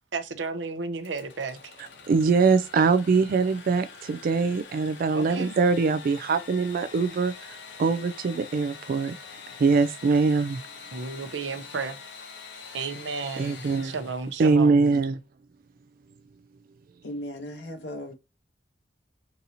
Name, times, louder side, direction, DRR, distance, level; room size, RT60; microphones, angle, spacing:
voice 1, 0.1-1.7 5.1-5.5 10.9-12.0 12.7-14.8, right 4 dB, 80° right, 0.7 m, -33 dB
Engine / Sawing, 1.0-14.7, left 5 dB, 90° left, 1.0 m, -45 dB
voice 2, 1.8-9.1 9.6-10.6 13.4-13.9 14.4-15.2, right 4 dB, 50° right, 0.3 m, -23 dB
voice 3, 17.0-18.1, left 1 dB, 70° left, 1.0 m, -36 dB
3.9 x 2.7 x 2.8 m
head